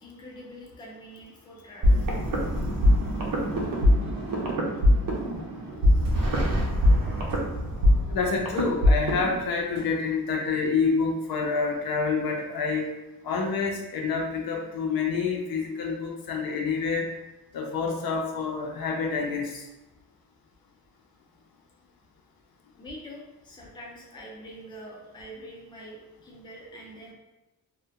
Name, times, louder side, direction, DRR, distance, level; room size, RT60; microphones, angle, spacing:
voice 1, 0.0-2.1 4.0-4.1 22.8-27.1, equal, 15° left, -3 dB, 0.4 m, -45 dB
sound 1, 1.8-9.4, left 1 dB, 65° right, 0.5 m, -23 dB
sound 2, 6.0-6.2 7.3-7.5 8.6-8.7 9.8-9.9, right 2 dB, 85° right, 0.9 m, -44 dB
voice 2, 8.1-12.9 13.2-17.1 17.5-19.6, left 4 dB, 75° left, 0 dB, 0.5 m, -27 dB
2.3 x 2.1 x 2.7 m, 0.97 s
wide cardioid pair, 165°, 36 cm